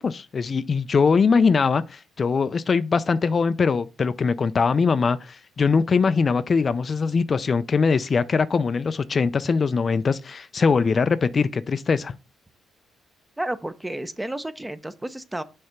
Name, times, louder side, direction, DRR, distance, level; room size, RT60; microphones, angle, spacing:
voice 1, 0.0-12.1, left 5 dB, 40° left, 0.3 m, -22 dB
voice 2, 13.4-15.4, right 1 dB, 10° right, 0.6 m, -31 dB
6.5 x 3.3 x 5.8 m
cardioid pair, 90°, 0 cm